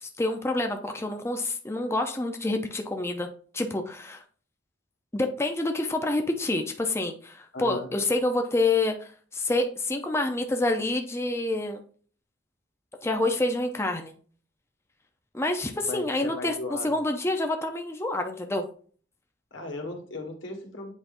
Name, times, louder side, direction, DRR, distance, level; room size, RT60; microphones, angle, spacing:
voice 1, 0.0-3.3 3.5-4.2 5.1-11.8 13.0-14.1 15.3-18.7, left 2 dB, 15° left, 5 dB, 0.6 m, -27 dB
voice 2, 7.5-7.9 15.9-17.0 19.5-20.9, left 2 dB, 90° left, 2 dB, 1.7 m, -36 dB
8.2 x 5.1 x 2.6 m, 0.44 s
head